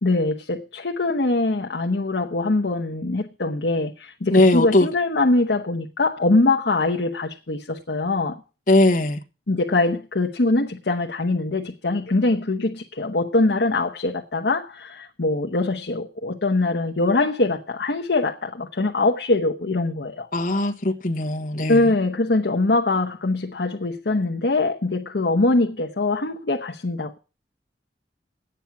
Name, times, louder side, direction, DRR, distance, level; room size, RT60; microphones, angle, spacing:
voice 1, 0.0-8.4 9.5-20.3 21.7-27.2, left 2 dB, 70° left, 1.0 m, -23 dB
voice 2, 4.3-4.9 8.7-9.2 20.3-21.9, left 2 dB, 50° left, 1.3 m, -19 dB
11.5 x 9.1 x 5.9 m
head